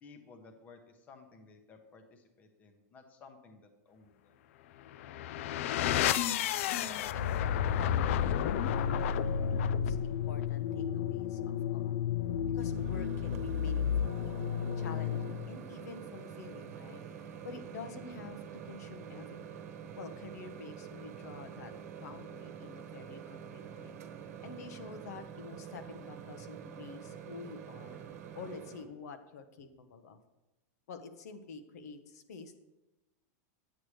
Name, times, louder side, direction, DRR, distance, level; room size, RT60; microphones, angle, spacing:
voice 1, 0.0-4.3, left 4 dB, 15° left, 7 dB, 0.9 m, -56 dB
sound 1, 4.9-15.6, left 9 dB, 50° left, 0.3 m, -32 dB
voice 2, 6.7-12.0 12.5-14.2 14.8-19.6 19.9-21.7 22.0-24.0 24.4-28.0 28.3-30.2 30.9-32.6, left 4 dB, 70° left, 8 dB, 1.1 m, -48 dB
Microwave oven, 12.6-28.9, right 8 dB, 60° right, 1.1 m, -47 dB
10.5 x 8.4 x 3.2 m, 1.0 s
supercardioid pair, 175°, 9 cm